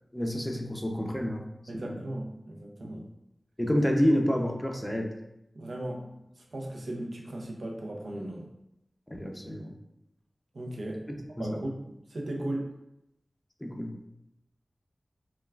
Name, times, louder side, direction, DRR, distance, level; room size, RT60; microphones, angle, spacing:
voice 1, 0.1-1.4 1.7-1.9 3.6-5.1 9.1-9.7 11.1-11.6 13.6-13.9, equal, 10° left, 2 dB, 0.6 m, -29 dB
voice 2, 1.7-3.0 5.5-8.5 10.5-12.7, right 1 dB, 80° right, 0 dB, 0.6 m, -37 dB
5.4 x 2.3 x 2.3 m, 0.84 s
wide cardioid pair, 65°, 0 cm